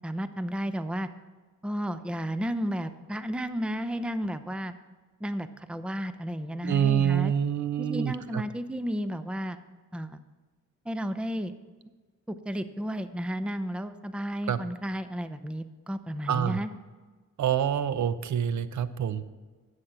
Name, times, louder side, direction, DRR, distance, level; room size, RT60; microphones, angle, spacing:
voice 1, 0.0-1.1 1.6-4.7 5.2-7.3 7.8-9.6 9.9-10.2 10.9-11.5 12.3-16.7, equal, 5° right, 11 dB, 0.6 m, -32 dB
voice 2, 6.6-8.4 14.5-14.6 16.3-16.6 17.4-19.2, right 9 dB, 65° right, 14 dB, 0.7 m, -26 dB
11.5 x 8.0 x 5.8 m, 1.3 s
cardioid pair, 85°, 31 cm